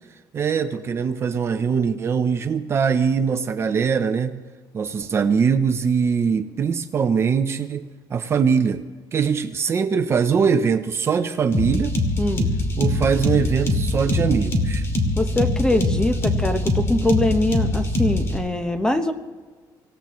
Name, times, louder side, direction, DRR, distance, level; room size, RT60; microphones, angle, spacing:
voice 1, 0.3-4.4 4.7-7.8 8.1-8.8 9.1-11.9 12.8-14.8, right 6 dB, 30° right, 7 dB, 0.7 m, -22 dB
sound 1, 11.5-18.4, left 1 dB, 30° left, 2.5 m, -23 dB
voice 2, 12.2-12.5 15.2-19.1, left 1 dB, 10° left, 7 dB, 1.1 m, -23 dB
25.5 x 16.5 x 3.1 m, 1.4 s
cardioid pair, 145°, 8 cm